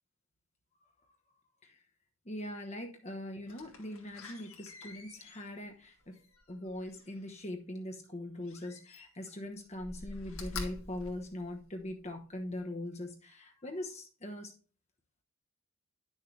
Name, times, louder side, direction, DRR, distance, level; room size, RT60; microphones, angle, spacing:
voice 1, 2.2-6.2 6.5-14.5, left 1 dB, 30° left, 3 dB, 1.1 m, -41 dB
Slam, 3.5-7.3 8.4-9.4 9.7-12.0 12.5-12.6, left 3 dB, 75° left, 1.9 m, -47 dB
10.5 x 6.5 x 3.3 m, 0.36 s
head